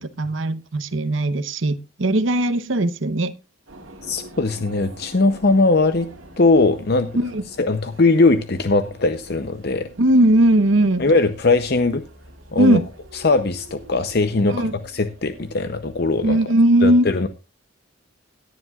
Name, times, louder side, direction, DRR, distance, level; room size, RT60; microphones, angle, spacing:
voice 1, 0.0-3.3 7.1-7.4 10.0-11.0 12.6-12.8 14.5-14.8 16.2-17.1, right 1 dB, 70° right, 0.9 m, -18 dB
sound 1, 3.7-16.3, right 1 dB, 85° right, 2.7 m, -45 dB
voice 2, 4.0-6.1 6.4-7.1 7.6-9.9 11.0-12.0 12.5-12.8 13.1-16.5 16.8-17.3, left 3 dB, 50° left, 0.7 m, -20 dB
17.0 x 11.0 x 2.4 m
head